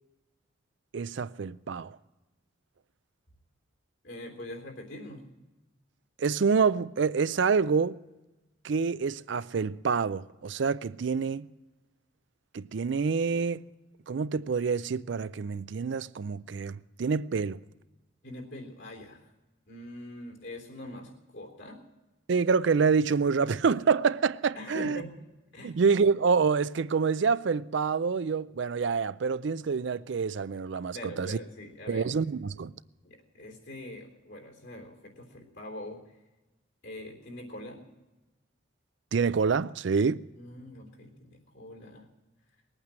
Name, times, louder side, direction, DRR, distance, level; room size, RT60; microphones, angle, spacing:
voice 1, 0.9-2.0 6.2-8.0 8.6-11.5 12.5-13.6 14.1-17.6 22.3-25.0 25.6-31.4 31.9-32.7 39.1-40.2, right 5 dB, 60° right, 0.4 m, -27 dB
voice 2, 4.0-5.2 18.2-19.2 19.7-21.8 24.6-25.1 25.5-25.7 30.9-32.1 33.0-36.0 36.8-37.8 40.4-42.1, left 1 dB, 65° left, 3.5 m, -43 dB
20.0 x 8.9 x 7.6 m
head